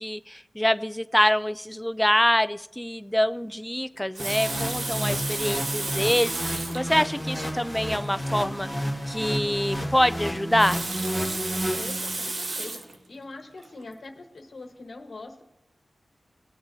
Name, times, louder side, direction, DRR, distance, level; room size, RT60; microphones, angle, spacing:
voice 1, 0.0-8.7 9.1-10.8, equal, 5° left, 14 dB, 0.3 m, -25 dB
Water tap faucet, 4.0-6.9 7.7-7.8 8.0-8.1 10.4-13.0 13.6-13.8, right 2 dB, 55° right, 0.9 m, -32 dB
sound 1, 4.2-12.4, equal, 15° right, 1.5 m, -31 dB
voice 2, 11.2-15.4, left 3 dB, 60° left, 3 dB, 1.2 m, -43 dB
19.5 x 8.7 x 2.7 m, 0.86 s
wide cardioid pair, 125°, 0 cm